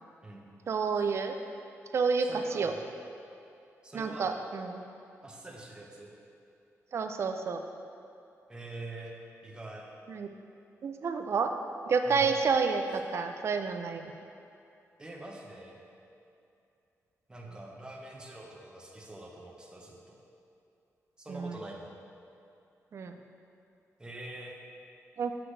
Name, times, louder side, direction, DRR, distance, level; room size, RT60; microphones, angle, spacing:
voice 1, 0.7-1.4 1.9-2.7 3.9-4.8 6.9-7.6 10.1-10.3 10.8-11.5 11.9-14.0 21.3-21.6 22.9-23.2 25.2-25.3, right 5 dB, 55° right, 6 dB, 0.5 m, -29 dB
voice 2, 2.2-2.8 3.8-4.3 5.2-6.1 8.5-9.9 12.1-12.2 15.0-15.8 17.3-20.2 21.2-22.0 24.0-24.5, right 1 dB, 15° right, -2 dB, 0.9 m, -45 dB
7.8 x 5.9 x 3.3 m, 2.6 s
cardioid pair, 110°, 5 cm